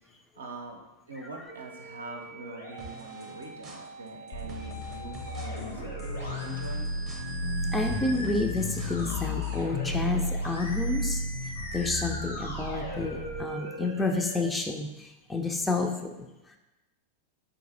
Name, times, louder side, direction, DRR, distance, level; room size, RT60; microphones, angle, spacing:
voice 1, 0.3-0.8 1.1-6.9, right 3 dB, 70° right, 1 dB, 0.5 m, -43 dB
Musical instrument, 1.5-14.5, equal, 80° left, 0.9 m, -41 dB
sound 1, 2.8-9.6, right 2 dB, 25° right, 0.6 m, -48 dB
sound 2, 4.3-13.4, left 1 dB, 55° left, 0.6 m, -33 dB
voice 2, 7.7-16.6, left 3 dB, 10° left, 3 dB, 0.3 m, -30 dB
3.9 x 2.6 x 2.6 m, 1.0 s
figure-of-eight pair, 90°, 0 cm